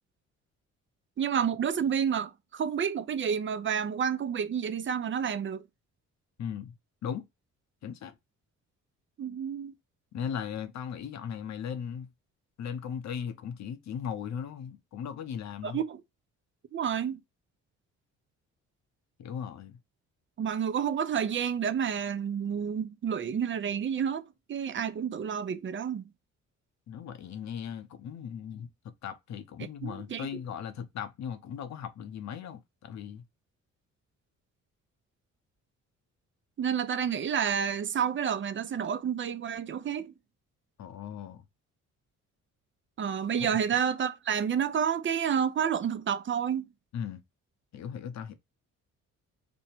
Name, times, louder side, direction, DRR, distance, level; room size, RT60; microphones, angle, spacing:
voice 1, 1.2-5.6 9.2-9.7 15.6-16.0 16.7-17.2 20.4-24.2 24.5-26.1 29.8-30.3 36.6-40.1 43.0-46.7, right 8 dB, 40° right, 0.7 m, -29 dB
voice 2, 6.4-6.7 7.0-7.2 7.8-8.1 10.1-12.1 12.6-15.8 19.2-19.8 26.9-28.7 29.0-33.2 40.8-41.4 43.4-43.5 46.9-47.2 47.7-48.3, left 8 dB, 65° left, 0.8 m, -37 dB
5.2 x 2.2 x 4.4 m
cardioid pair, 90°, 30 cm